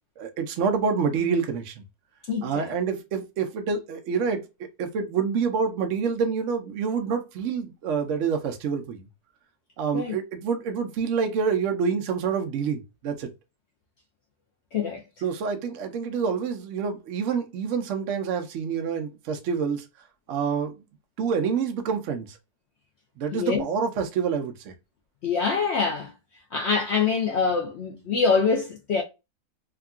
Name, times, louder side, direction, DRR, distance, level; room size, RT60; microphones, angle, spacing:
voice 1, 0.2-1.8 2.4-9.1 9.8-13.3 15.2-19.8 20.3-20.8 21.2-22.4 23.2-24.7, right 6 dB, 65° right, 0.8 m, -27 dB
voice 2, 2.3-2.7 9.9-10.1 14.7-15.0 23.3-23.6 25.2-26.1 26.5-29.0, left 5 dB, 70° left, 0.6 m, -25 dB
3.6 x 2.2 x 2.4 m
omnidirectional pair, 1.7 m